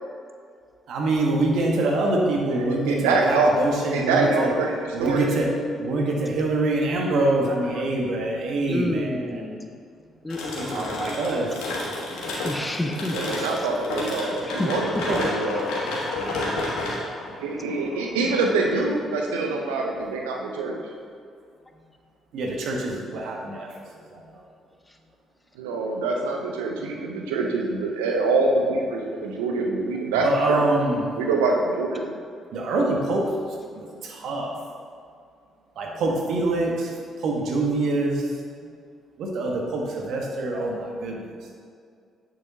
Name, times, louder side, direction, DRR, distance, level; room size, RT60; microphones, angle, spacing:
voice 1, 0.9-4.5 4.9-5.5 5.8-9.4 10.5-11.6 13.4-13.5 22.3-23.7 24.1-24.2 30.2-31.1 32.5-33.3 33.7-34.5 35.8-36.9 37.2-38.2 39.2-41.3, right 2 dB, 65° right, 0 dB, 1.2 m, -25 dB
voice 2, 1.9-3.6 3.9-5.3 13.1-15.7 17.4-20.8 25.6-30.6 31.2-32.2, right 3 dB, 80° right, 1 dB, 0.6 m, -25 dB
voice 3, 8.7-9.7 10.2-10.9 12.4-13.5 14.5-14.7 15.2-15.4, left 1 dB, 15° left, 4 dB, 0.8 m, -29 dB
sound 1, 10.3-19.0, left 2 dB, 75° left, 1.5 m, -31 dB
8.8 x 7.1 x 2.8 m, 2.2 s
hypercardioid pair, 45°, 0 cm